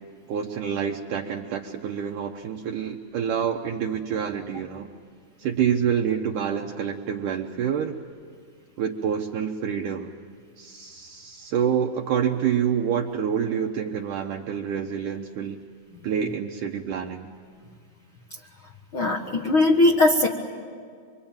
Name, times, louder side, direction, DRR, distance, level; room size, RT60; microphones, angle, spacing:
voice 1, 0.3-4.9 5.4-8.0 8.8-10.1 10.6-15.6 16.0-17.3, right 8 dB, 70° right, 2 dB, 2.1 m, -27 dB
voice 2, 18.9-20.3, left 2 dB, 65° left, 1 dB, 1.2 m, -19 dB
25.5 x 24.5 x 8.9 m, 2.2 s
omnidirectional pair, 4.5 m